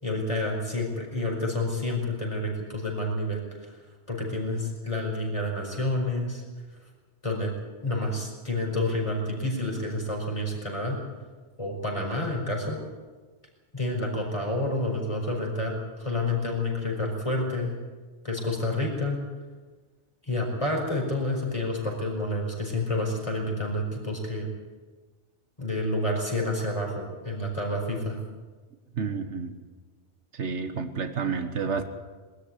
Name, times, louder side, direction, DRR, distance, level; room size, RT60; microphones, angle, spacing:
voice 1, 0.0-3.8 4.1-6.4 7.2-7.5 7.8-11.0 11.6-12.8 13.7-17.8 18.2-19.2 20.3-24.5 25.6-28.2, left 1 dB, 25° left, 0 dB, 5.2 m, -29 dB
voice 2, 29.0-29.5 30.4-31.8, right 5 dB, 75° right, 8 dB, 1.6 m, -30 dB
21.0 x 13.5 x 9.6 m, 1.4 s
omnidirectional pair, 1.2 m